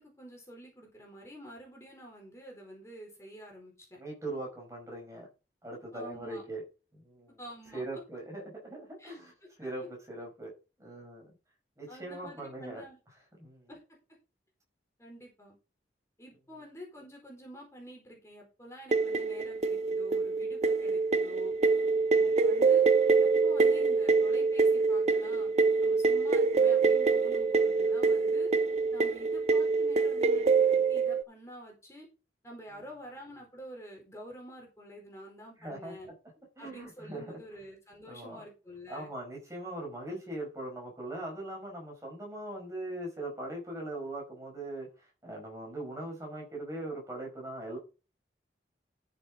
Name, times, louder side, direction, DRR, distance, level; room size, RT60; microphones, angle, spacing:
voice 1, 0.0-4.0 5.9-6.4 7.4-7.8 9.0-9.7 11.9-13.0 13.7-14.0 15.0-15.5 16.2-21.5 22.1-22.9 23.2-25.5 25.8-28.5 28.9-32.1 32.4-36.1 36.6-39.1, equal, 15° left, -1 dB, 4.4 m, -48 dB
voice 2, 4.0-5.3 5.6-6.6 6.9-7.4 7.7-9.3 9.6-10.5 10.8-11.2 11.8-12.8 13.4-13.7 22.1-22.3 35.6-36.0 36.6-37.4 38.1-38.4 38.9-47.8, right 1 dB, 15° right, 0 dB, 5.4 m, -40 dB
sound 1, 18.9-31.2, right 4 dB, 35° right, 0.4 m, -25 dB
13.0 x 7.5 x 3.7 m, 0.31 s
head